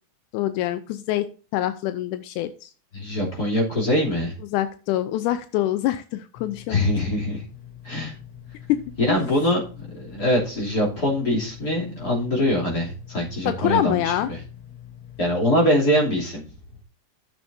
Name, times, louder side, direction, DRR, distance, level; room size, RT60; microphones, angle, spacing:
voice 1, 0.3-2.7 4.5-6.8 8.7-8.8 9.1-9.2 13.5-14.3, left 13 dB, 85° left, 10 dB, 2.1 m, -25 dB
voice 2, 2.9-4.3 6.7-7.4 7.8-8.1 9.0-14.4 15.2-16.4, left 1 dB, 30° left, -2 dB, 3.2 m, -23 dB
sound 1, 6.4-15.3, left 10 dB, 60° left, 0.9 m, -44 dB
12.5 x 7.1 x 2.6 m, 0.37 s
omnidirectional pair, 3.5 m